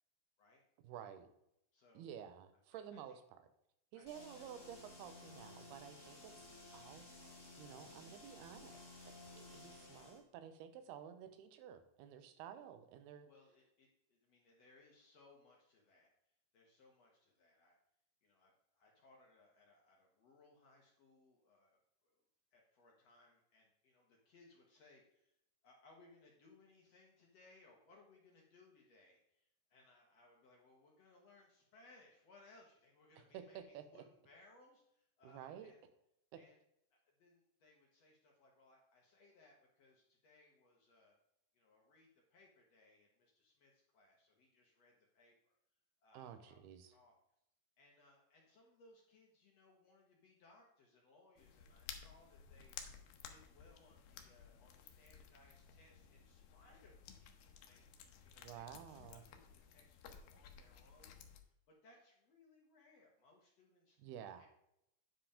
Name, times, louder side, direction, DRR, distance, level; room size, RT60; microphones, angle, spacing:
voice 1, 0.8-1.3 1.9-3.2 3.9-6.3 6.7-8.9 9.4-13.3 33.3-34.0 35.2-35.7 36.3-36.4 46.1-46.9 58.4-59.2 64.0-64.5, right 9 dB, 90° right, 9 dB, 2.9 m, -52 dB
voice 2, 1.7-2.1 2.7-3.2 3.9-4.5 10.8-10.9 13.3-17.8 18.2-22.2 22.5-25.4 25.6-35.9 36.4-36.6 36.9-41.2 41.5-45.6 46.0-47.2 47.8-64.0 64.3-64.5, left 2 dB, 55° left, 0 dB, 1.9 m, -67 dB
sound 1, 4.0-10.2, left 2 dB, 35° left, 0.3 m, -56 dB
sound 2, 51.4-61.4, left 7 dB, 75° left, 2.5 m, -56 dB
9.2 x 5.1 x 5.0 m, 0.80 s
omnidirectional pair, 4.4 m